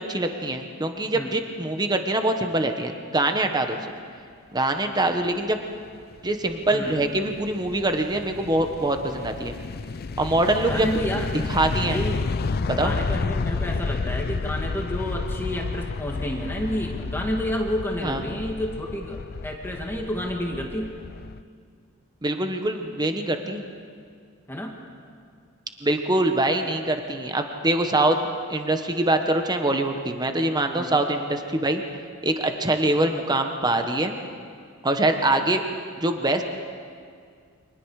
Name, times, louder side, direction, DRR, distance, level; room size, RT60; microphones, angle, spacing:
voice 1, 0.0-3.8 4.5-5.6 6.2-9.5 10.2-10.9 11.5-12.0 12.6-12.9 18.0-18.2 22.2-23.6 25.8-28.2 28.5-31.8 32.2-34.1 34.8-35.6 36.0-36.4, right 2 dB, 20° right, 5 dB, 1.2 m, -24 dB
sound 1, 5.9-21.4, left 4 dB, 45° left, 0.5 m, -31 dB
voice 2, 6.7-7.1 10.6-11.4 11.8-12.2 12.7-21.0 24.5-24.8 30.7-31.0, equal, 10° left, 0 dB, 1.9 m, -30 dB
29.5 x 24.5 x 4.9 m, 2.2 s
head